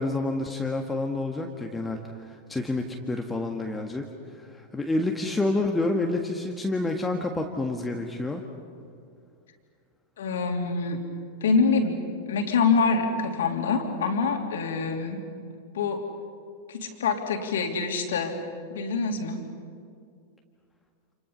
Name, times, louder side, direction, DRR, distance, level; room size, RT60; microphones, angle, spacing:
voice 1, 0.0-2.0 2.3-4.1 4.4-8.4, left 2 dB, 10° left, 2 dB, 1.7 m, -28 dB
voice 2, 10.2-11.0 11.4-12.0 12.3-15.2 15.7-16.0 16.7-18.4 18.7-19.4, left 4 dB, 60° left, 3 dB, 3.1 m, -25 dB
29.5 x 28.5 x 5.6 m, 2.3 s
figure-of-eight pair, 90°, 0 cm